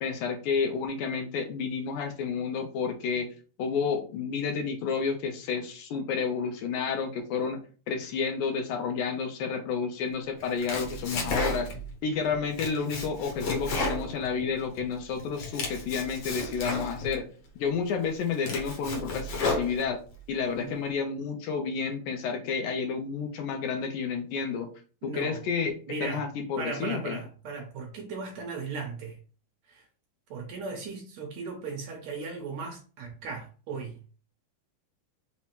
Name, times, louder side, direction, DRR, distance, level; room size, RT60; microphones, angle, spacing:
voice 1, 0.0-3.3 3.6-11.7 12.0-17.2 17.6-20.0 20.3-24.7 25.0-27.2, left 5 dB, 80° left, 2.0 m, -30 dB
Domestic sounds home sounds, 10.4-11.9 12.3-14.8 15.2-17.2 17.7-17.8 18.2-20.2, left 2 dB, 65° left, 1.7 m, -33 dB
voice 2, 25.0-25.4 25.9-26.2 26.6-29.2 29.7-29.9 30.3-34.0, right 4 dB, 70° right, 1.9 m, -37 dB
5.6 x 2.1 x 4.4 m
omnidirectional pair, 3.7 m